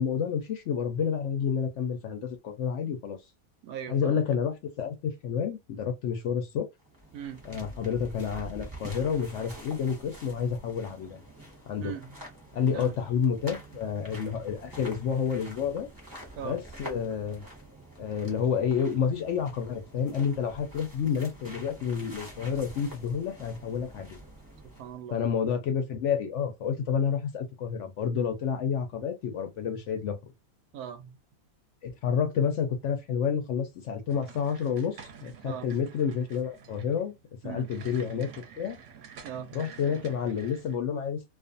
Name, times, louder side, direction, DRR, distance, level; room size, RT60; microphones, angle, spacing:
voice 1, 0.0-3.2 3.9-6.7 7.4-11.2 11.7-11.9 12.5-15.9 16.4-17.4 18.0-24.2 25.1-30.2 31.8-37.1 37.4-38.3 38.6-38.8 39.5-41.3, left 7 dB, 65° left, 0.7 m, -29 dB
voice 2, 3.6-4.2 7.1-7.4 11.8-12.1 12.7-12.9 16.4-16.6 24.6-25.2 30.7-31.2 35.4-35.7 37.4-38.0 39.2-39.6, right 9 dB, 85° right, 1.1 m, -40 dB
sound 1, 6.8-25.0, right 1 dB, 20° right, 0.5 m, -47 dB
sound 2, 34.1-40.8, right 6 dB, 65° right, 0.9 m, -49 dB
2.4 x 2.4 x 2.4 m
omnidirectional pair, 1.6 m